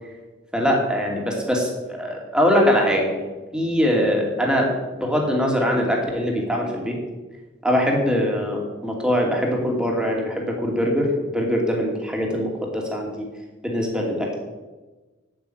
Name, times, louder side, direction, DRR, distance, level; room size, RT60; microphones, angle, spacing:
voice 1, 0.5-3.2 3.5-4.7 5.0-7.0 7.6-13.3 13.6-14.3, equal, 5° right, -1 dB, 2.6 m, -22 dB
8.8 x 8.6 x 9.2 m, 1.2 s
head